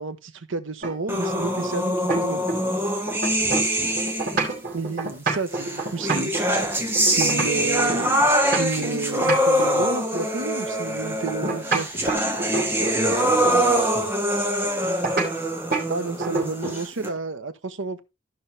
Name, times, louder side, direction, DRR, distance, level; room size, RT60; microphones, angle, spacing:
voice 1, 0.0-2.4 4.7-6.7 7.0-8.2 8.6-11.9 15.9-18.0, right 3 dB, 85° right, 1.0 m, -31 dB
sound 1, 0.8-2.8 3.1-8.9 9.2-10.4 11.3-13.1 15.0-15.3 15.7-15.9 16.2-16.9, right 3 dB, 50° right, 3.9 m, -28 dB
sound 2, 1.1-4.5 5.5-17.1, equal, 10° right, 1.5 m, -24 dB
voice 2, 3.4-4.0 11.9-12.1 12.7-14.1 16.6-16.7, equal, 30° left, 1.6 m, -35 dB
13.5 x 5.6 x 3.3 m
head